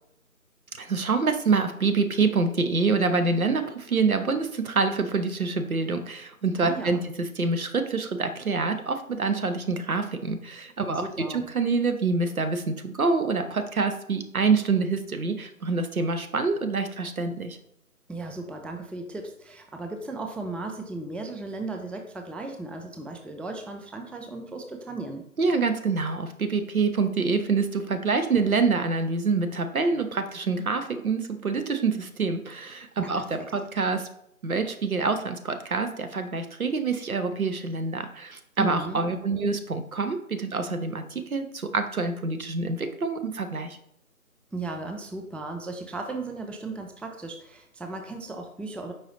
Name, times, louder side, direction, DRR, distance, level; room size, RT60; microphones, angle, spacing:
voice 1, 0.8-17.6 25.4-34.1 34.4-43.8, right 4 dB, 70° right, 8 dB, 0.7 m, -26 dB
voice 2, 6.6-7.0 10.8-11.5 18.1-25.2 33.0-33.5 38.6-39.0 44.5-48.9, right 3 dB, 5° left, 4 dB, 0.3 m, -36 dB
4.7 x 2.9 x 3.7 m, 0.73 s
figure-of-eight pair, 180°, 44 cm